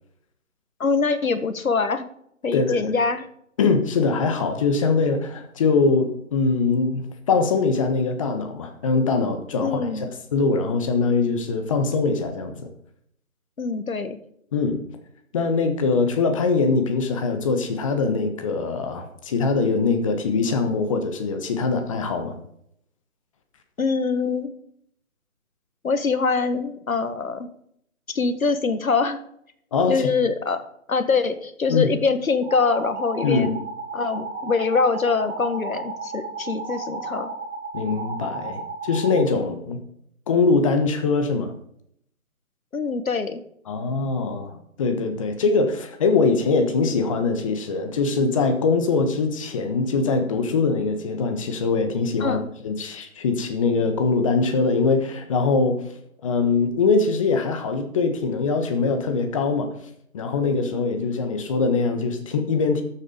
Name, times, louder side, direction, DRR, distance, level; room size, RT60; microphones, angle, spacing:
voice 1, 0.8-2.0 2.4-3.3 9.6-10.1 13.6-14.2 23.8-24.5 25.8-27.5 28.1-29.2 29.9-30.6 30.9-33.6 33.9-37.3 42.7-43.4 52.2-52.5, left 4 dB, 75° left, 10 dB, 1.6 m, -24 dB
voice 2, 2.5-2.9 3.6-9.9 10.3-12.7 14.5-14.8 15.3-22.4 29.7-30.0 31.7-31.9 33.2-33.5 37.7-39.8 40.3-41.5 43.7-52.4 52.6-55.8 56.2-59.7 60.1-62.8, left 4 dB, 25° left, 7 dB, 1.2 m, -22 dB
sound 1, 32.4-39.2, right 3 dB, 5° right, 1.2 m, -33 dB
13.0 x 7.3 x 5.2 m, 0.71 s
figure-of-eight pair, 150°, 42 cm